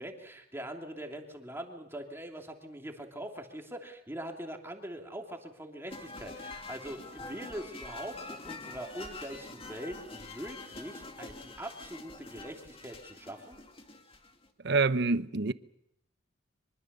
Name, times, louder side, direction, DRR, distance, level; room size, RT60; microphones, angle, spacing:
voice 1, 0.0-13.6, right 1 dB, 15° right, 2.9 m, -42 dB
sound 1, 5.9-14.5, left 3 dB, 30° left, 2.4 m, -46 dB
voice 2, 14.6-15.5, right 3 dB, 60° right, 0.9 m, -26 dB
24.5 x 23.5 x 6.8 m
head